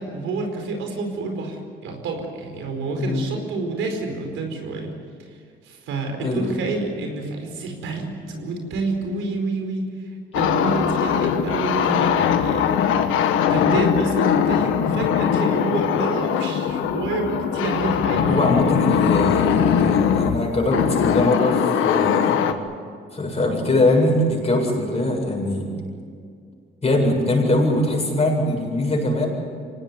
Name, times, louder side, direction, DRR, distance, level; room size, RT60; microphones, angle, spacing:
voice 1, 0.0-4.9 5.2-5.4 5.6-12.7 13.4-18.7 24.4-24.7, right 3 dB, 90° right, 4 dB, 4.8 m, -28 dB
voice 2, 6.2-6.5 18.3-22.4 23.1-25.7 26.8-29.3, left 1 dB, 30° left, 0 dB, 8.0 m, -22 dB
sound 1, 10.3-22.5, left 8 dB, 85° left, 1.5 m, -21 dB
25.0 x 18.5 x 9.6 m, 2.2 s
cardioid pair, 90°, 20 cm